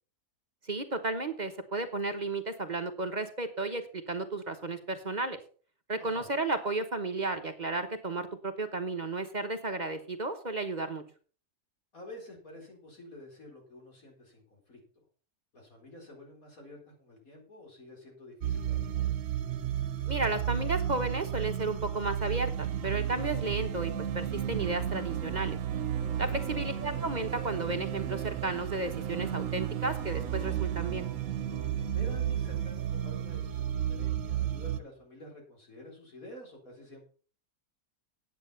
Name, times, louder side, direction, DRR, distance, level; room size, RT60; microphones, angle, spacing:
voice 1, 0.6-5.4 5.9-11.0 20.1-25.6 26.2-31.1, right 3 dB, 35° right, 7 dB, 1.1 m, -33 dB
voice 2, 6.0-6.3 11.9-15.0 15.5-19.2 26.2-26.6 31.9-37.0, left 1 dB, 80° left, 0 dB, 4.6 m, -49 dB
sound 1, 18.4-34.8, right 10 dB, 70° right, 1.2 m, -33 dB
9.9 x 8.4 x 5.7 m, 0.41 s
omnidirectional pair, 1.5 m